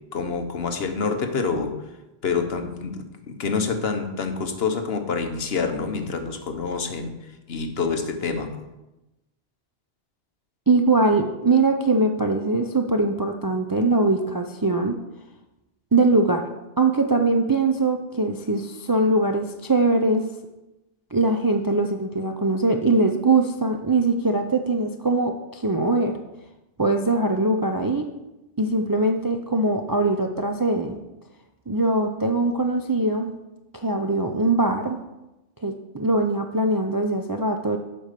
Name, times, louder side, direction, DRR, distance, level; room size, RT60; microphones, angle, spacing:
voice 1, 0.1-1.7 2.2-8.6, left 5 dB, 65° left, 6 dB, 1.2 m, -27 dB
voice 2, 10.7-15.0 15.9-16.4 16.8-20.2 21.1-26.1 26.8-28.1 28.6-31.0 31.7-33.3 33.7-35.0 35.6-37.8, right 2 dB, 30° right, 4 dB, 0.4 m, -22 dB
8.1 x 5.3 x 6.6 m, 0.98 s
omnidirectional pair, 1.1 m